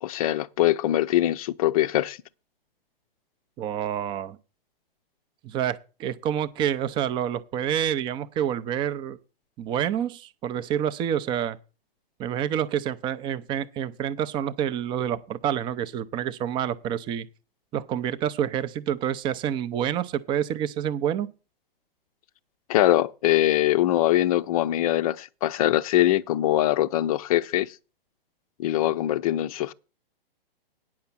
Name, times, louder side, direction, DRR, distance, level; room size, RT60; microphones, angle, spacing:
voice 1, 0.0-2.2 22.7-27.7 28.6-29.7, left 14 dB, 40° left, 0.6 m, -22 dB
voice 2, 3.6-4.4 5.4-9.2 9.6-11.6 12.2-17.3 17.7-21.3, right 10 dB, 15° right, 0.5 m, -28 dB
9.5 x 5.9 x 7.1 m
hypercardioid pair, 125°, 29 cm